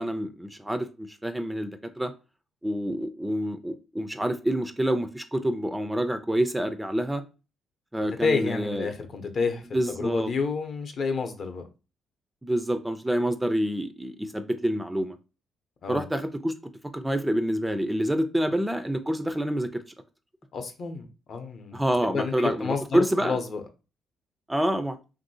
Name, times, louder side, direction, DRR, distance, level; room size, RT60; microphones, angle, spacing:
voice 1, 0.0-2.1 2.6-7.2 7.9-8.9 9.7-10.3 12.4-15.2 15.9-19.8 21.7-23.4 24.5-25.0, right 1 dB, 10° right, 0.3 m, -27 dB
voice 2, 8.2-11.6 15.8-16.0 20.5-21.8 22.1-23.6, left 4 dB, 55° left, 0.6 m, -29 dB
2.9 x 2.6 x 2.7 m
cardioid pair, 90°, 0 cm